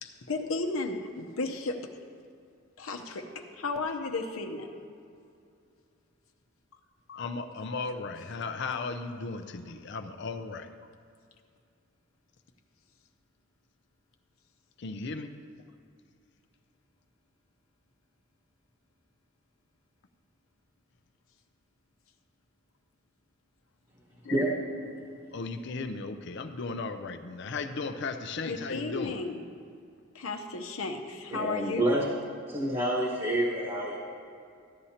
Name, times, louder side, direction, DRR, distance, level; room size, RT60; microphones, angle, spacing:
voice 1, 0.0-1.9 2.8-4.7 28.5-29.4 30.1-31.9, left 3 dB, 85° left, 0.8 m, -34 dB
voice 2, 7.1-10.7 14.8-15.3 24.2-24.4 25.3-29.1, left 4 dB, 55° left, 0.5 m, -36 dB
voice 3, 24.3-24.7 31.3-32.0 32.5-34.0, right 1 dB, 25° right, 1.2 m, -28 dB
14.5 x 11.0 x 2.9 m
head